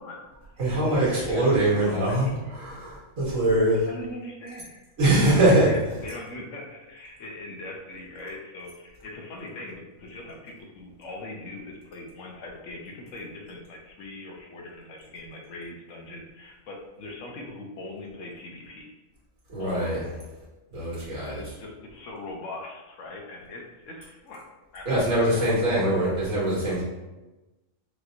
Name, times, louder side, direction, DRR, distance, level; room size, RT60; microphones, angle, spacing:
voice 1, 0.0-2.4 3.8-4.8 5.2-18.9 19.6-20.0 21.2-24.4 24.7-25.9, left 2 dB, 70° left, 0 dB, 1.1 m, -41 dB
voice 2, 0.6-3.8 5.0-5.7 19.5-20.0 20.7-21.4 24.9-26.8, right 1 dB, 80° right, -7 dB, 2.0 m, -23 dB
4.9 x 3.0 x 2.6 m, 1.1 s
omnidirectional pair, 1.4 m